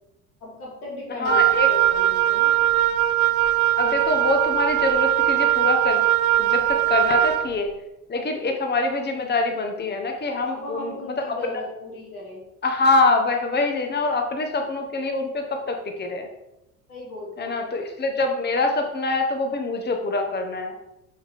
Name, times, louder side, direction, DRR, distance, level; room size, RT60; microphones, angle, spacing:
voice 1, 0.4-2.5 6.7-7.3 10.4-12.4 16.9-17.5, left 2 dB, 90° left, -3 dB, 2.2 m, -37 dB
voice 2, 1.2-1.7 3.8-6.1 6.4-7.7 8.1-11.6 12.6-16.3 17.4-20.8, left 3 dB, 25° left, 4 dB, 1.2 m, -24 dB
Wind instrument woodwind instrument, 1.3-7.5, right 13 dB, 80° right, 0.6 m, -20 dB
6.1 x 5.6 x 3.6 m, 0.90 s
hypercardioid pair, 65°, 43 cm